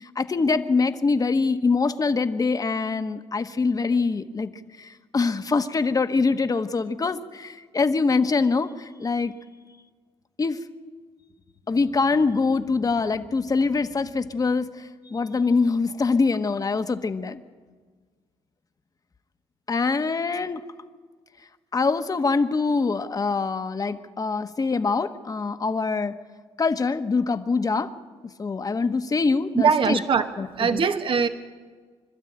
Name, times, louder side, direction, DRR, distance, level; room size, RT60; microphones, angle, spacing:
voice 1, 0.0-4.5 4.8-9.3 10.4-10.6 11.7-14.7 15.1-17.4 19.7-20.6 21.7-26.1 26.6-27.9 28.4-30.0 30.4-30.5 30.7-30.8, left 4 dB, 30° left, 9 dB, 1.3 m, -24 dB
voice 2, 29.6-30.3 30.5-31.3, right 6 dB, 50° right, 8 dB, 1.3 m, -21 dB
26.0 x 12.5 x 8.9 m, 1.5 s
supercardioid pair, 70°, 11 cm